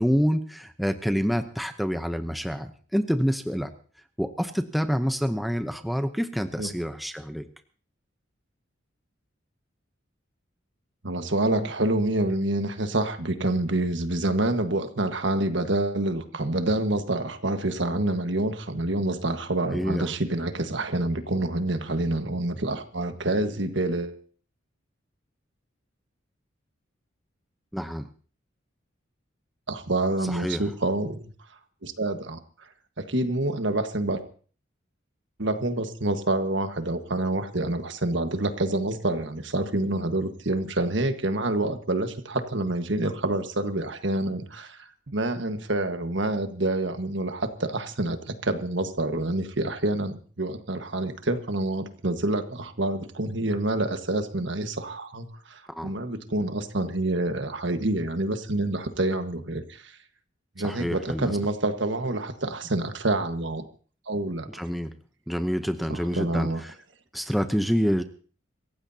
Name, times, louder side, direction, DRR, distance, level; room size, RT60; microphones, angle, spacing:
voice 1, 0.0-3.7 4.2-7.4 19.7-20.1 27.7-28.1 30.3-30.6 55.7-55.9 60.6-61.3 64.5-64.9 65.3-66.7 67.1-68.0, equal, ahead, 8 dB, 0.7 m, -27 dB
voice 2, 11.0-24.2 29.7-31.2 31.8-32.4 33.0-34.2 35.4-60.0 60.6-63.6 64.1-64.6 65.9-66.6, right 2 dB, 65° right, 8 dB, 1.5 m, -27 dB
26.0 x 15.5 x 2.8 m, 0.41 s
head